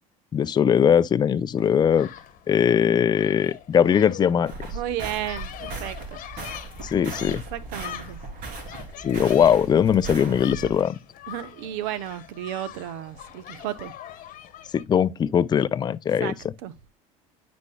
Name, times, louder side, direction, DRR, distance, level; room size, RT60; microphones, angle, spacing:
voice 1, 0.3-2.1 2.5-4.5 6.9-7.4 9.0-11.0 14.7-16.3, left 8 dB, 25° left, 0.4 m, -20 dB
sound 1, 1.6-14.8, left 11 dB, 55° left, 1.1 m, -43 dB
sound 2, 4.5-10.8, right 3 dB, 55° right, 3.2 m, -37 dB
voice 2, 4.7-6.2 7.5-8.2 10.6-10.7 11.3-13.9 16.2-16.4 16.6-16.7, right 12 dB, 70° right, 0.9 m, -33 dB
9.7 x 5.2 x 2.2 m
supercardioid pair, 90°, 17 cm